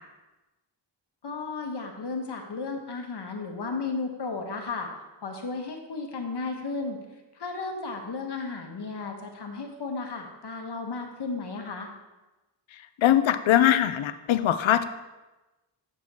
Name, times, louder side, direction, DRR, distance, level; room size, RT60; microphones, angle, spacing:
voice 1, 1.2-4.9 5.2-7.0 7.3-11.9, left 4 dB, 60° left, 3 dB, 1.2 m, -34 dB
voice 2, 13.0-14.9, left 11 dB, 75° left, 12 dB, 0.5 m, -21 dB
7.8 x 6.0 x 2.8 m, 1.1 s
cardioid pair, 55°, 47 cm